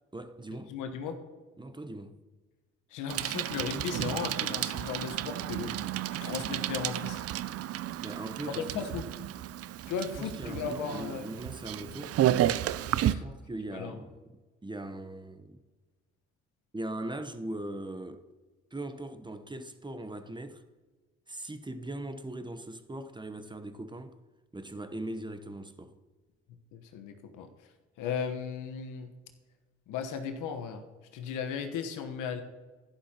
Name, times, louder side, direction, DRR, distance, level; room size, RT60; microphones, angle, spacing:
voice 1, 0.1-0.7 1.6-2.2 8.0-9.0 10.2-12.2 13.1-14.2 14.6-15.6 16.7-18.2 18.7-20.6 21.3-24.2 24.5-25.9, right 1 dB, 15° right, 0.9 m, -40 dB
voice 2, 0.7-1.2 2.9-5.7 6.1-7.2 8.4-9.1 9.9-11.3 13.1-13.2 13.7-14.0 26.7-27.5 28.0-29.1 29.9-30.8 31.1-32.4, left 6 dB, 75° left, 1.2 m, -36 dB
Bicycle, 3.1-13.2, right 12 dB, 50° right, 0.4 m, -32 dB
11.5 x 10.5 x 2.9 m
hypercardioid pair, 50°, 31 cm